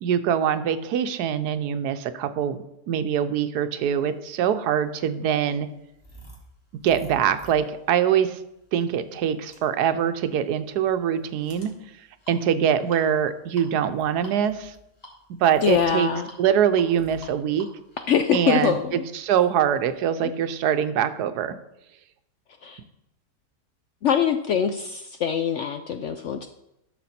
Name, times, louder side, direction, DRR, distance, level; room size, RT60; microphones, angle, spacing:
voice 1, 0.0-2.6 2.9-5.7 6.8-8.4 8.7-11.7 12.3-14.7 15.3-16.1 16.4-17.7 18.3-21.6, right 9 dB, 80° right, 11 dB, 1.2 m, -23 dB
sound 1, 4.4-20.0, equal, 25° left, 2.3 m, -50 dB
voice 2, 15.6-16.3 18.1-19.0 22.6-22.8 24.0-26.5, left 8 dB, 70° left, 8 dB, 0.7 m, -23 dB
12.0 x 6.5 x 4.2 m, 0.85 s
omnidirectional pair, 1.7 m